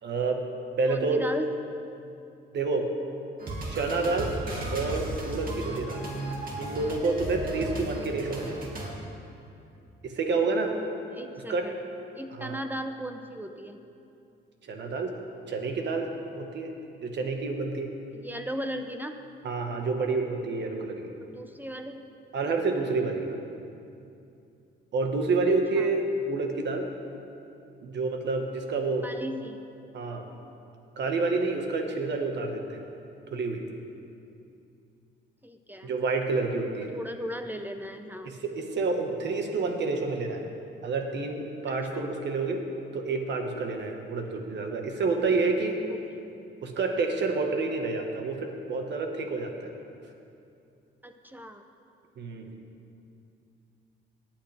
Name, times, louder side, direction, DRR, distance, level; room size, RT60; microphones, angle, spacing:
voice 1, 0.0-0.4 0.8-1.2 2.5-2.9 3.7-4.4 4.7-6.1 6.6-8.7 10.0-10.7 11.5-11.7 12.3-12.6 14.6-15.1 15.5-16.7 17.0-17.9 19.4-21.1 22.3-23.4 24.9-26.9 27.8-29.1 29.9-30.3 31.0-32.8 33.3-33.6 35.8-36.9 38.2-40.5 40.8-42.6 42.9-45.8 46.6-49.7 52.2-52.5, right 3 dB, 60° right, 3 dB, 1.5 m, -29 dB
voice 2, 0.9-1.5 11.1-11.8 12.1-13.8 18.1-19.2 21.2-22.0 25.8-25.9 29.0-29.6 35.4-35.9 36.9-38.3 41.7-42.1 45.9-46.3 51.0-51.6, equal, 10° right, 6 dB, 0.7 m, -37 dB
sound 1, 3.4-8.9, right 1 dB, 45° right, 2.2 m, -35 dB
18.0 x 9.0 x 3.4 m, 2.6 s
cardioid pair, 90°, 20 cm